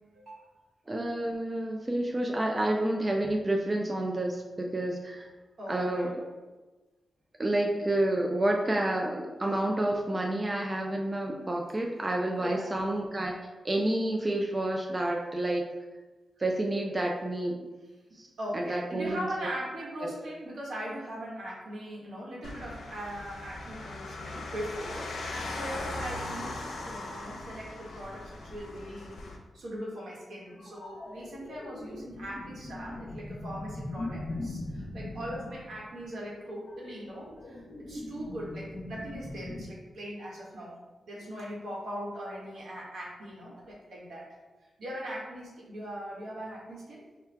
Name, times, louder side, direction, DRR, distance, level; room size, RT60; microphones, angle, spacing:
voice 1, 0.1-0.5 5.6-6.1 12.3-12.7 18.1-29.2 29.5-40.8 41.1-44.3 44.6-47.0, equal, 80° right, -5 dB, 1.3 m, -40 dB
voice 2, 0.9-5.3 5.7-6.1 7.4-13.3 13.6-15.7 16.4-17.6 18.2-18.3 18.5-19.3 20.0-20.1, right 1 dB, 25° right, 1 dB, 0.4 m, -29 dB
sound 1, 22.4-29.4, left 2 dB, 90° left, 0.6 m, -39 dB
sound 2, 30.6-39.6, left 1 dB, 55° left, 0.8 m, -41 dB
4.4 x 2.3 x 3.3 m, 1.2 s
wide cardioid pair, 105°, 0 cm